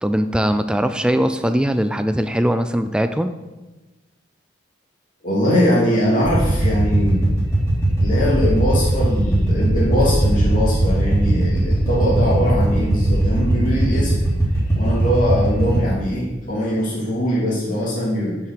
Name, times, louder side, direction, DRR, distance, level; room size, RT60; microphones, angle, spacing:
voice 1, 0.0-3.3, equal, 5° right, 9 dB, 0.4 m, -20 dB
voice 2, 5.2-7.2 8.0-14.1 14.8-18.4, equal, 40° left, -5 dB, 3.0 m, -21 dB
sound 1, 6.2-15.9, right 1 dB, 15° left, 3.1 m, -19 dB
9.3 x 5.8 x 6.5 m, 1.1 s
head